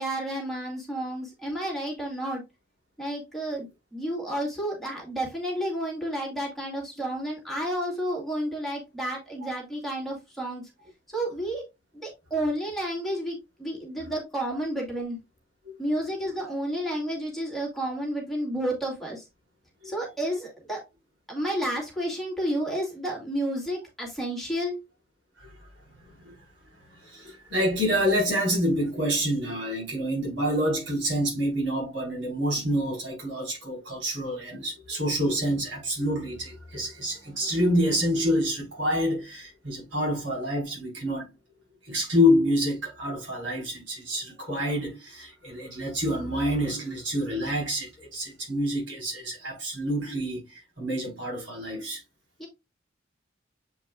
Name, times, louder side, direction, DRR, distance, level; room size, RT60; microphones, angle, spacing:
voice 1, 0.0-2.4 3.0-10.6 11.1-11.6 11.9-15.2 15.8-19.2 19.8-20.8 21.3-24.8 52.4-52.5, right 1 dB, ahead, 2.5 m, -31 dB
voice 2, 26.0-26.4 26.9-41.3 41.8-52.0, equal, 70° right, 4.4 m, -27 dB
8.0 x 5.1 x 2.4 m
head